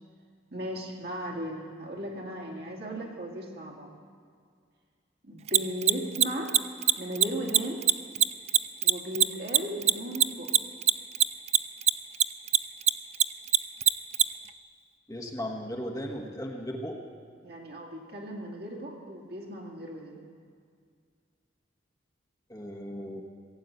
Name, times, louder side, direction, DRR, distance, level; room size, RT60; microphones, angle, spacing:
voice 1, 0.5-3.9 5.2-6.5 7.0-7.8 8.8-10.5 17.4-20.2, equal, 55° right, -1 dB, 2.4 m, -36 dB
Mechanisms, 5.5-12.2 12.5-14.2, right 11 dB, 35° right, 0.3 m, -20 dB
voice 2, 15.1-17.0 22.5-23.2, equal, 20° left, 0 dB, 1.1 m, -36 dB
17.5 x 8.3 x 7.9 m, 2.1 s
head